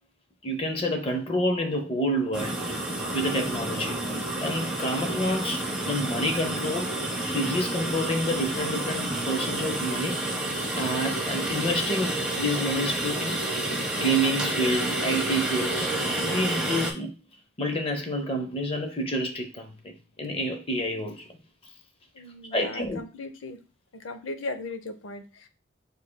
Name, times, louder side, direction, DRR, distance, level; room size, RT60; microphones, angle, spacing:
voice 1, 0.4-2.6 3.1-4.0 4.4-6.9 7.3-10.2 10.7-13.4 13.9-17.1 17.6-21.2 22.5-23.0, equal, 30° left, 0.5 m, -28 dB
sound 1, 2.3-16.9, right 1 dB, 5° right, 0.8 m, -29 dB
voice 2, 22.1-23.6 23.9-25.5, left 2 dB, 80° left, 0.7 m, -37 dB
7.1 x 3.2 x 2.2 m
head